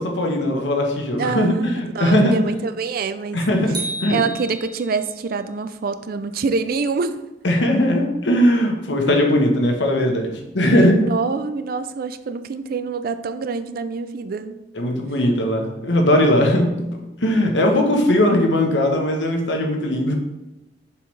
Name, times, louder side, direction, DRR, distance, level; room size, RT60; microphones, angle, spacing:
voice 1, 0.0-2.4 3.3-4.2 7.4-10.9 14.7-16.9 17.2-20.1, left 1 dB, 90° left, 2 dB, 1.1 m, -19 dB
voice 2, 1.2-3.4 4.1-7.2 10.7-14.6 17.6-17.8, right 4 dB, 55° right, 11 dB, 0.4 m, -26 dB
sound 1, 3.7-5.1, right 2 dB, 25° right, 1.2 m, -31 dB
6.9 x 4.6 x 3.2 m, 0.98 s
head